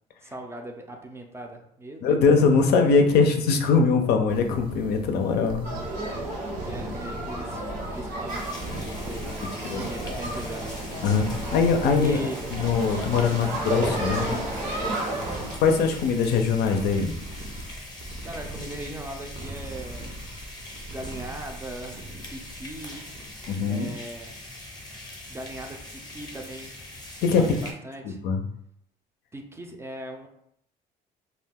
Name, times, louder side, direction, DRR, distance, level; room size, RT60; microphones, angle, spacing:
voice 1, 0.2-2.2 6.6-8.7 9.1-10.8 12.0-12.4 13.3-13.5 15.2-15.5 18.2-20.1 20.9-22.0 22.3-23.1 23.7-24.4 25.3-26.9 27.4-28.2 29.3-30.3, right 1 dB, 15° right, 3 dB, 0.4 m, -39 dB
voice 2, 2.0-5.7 9.6-9.8 11.0-12.2 12.5-14.3 15.6-17.1 23.5-23.9 27.2-27.4 28.0-28.4, left 5 dB, 75° left, 5 dB, 0.5 m, -22 dB
sound 1, 4.3-23.6, right 1 dB, 55° right, 0.6 m, -40 dB
sound 2, 5.6-15.6, right 1 dB, 80° right, 1.0 m, -32 dB
sound 3, 8.3-27.7, left 1 dB, 25° left, 0.7 m, -42 dB
2.3 x 2.2 x 3.4 m, 0.72 s
cardioid pair, 110°, 17 cm